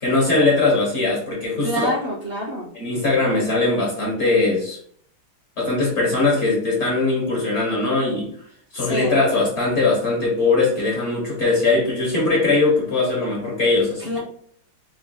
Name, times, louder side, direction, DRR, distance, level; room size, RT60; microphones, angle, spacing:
voice 1, 0.0-1.8 2.7-4.8 5.6-8.3 8.7-14.2, left 3 dB, 40° left, -4 dB, 1.3 m, -20 dB
voice 2, 1.6-2.7 8.8-9.2 14.0-14.2, equal, 45° right, -6 dB, 0.7 m, -26 dB
4.8 x 3.4 x 2.3 m, 0.62 s
omnidirectional pair, 2.3 m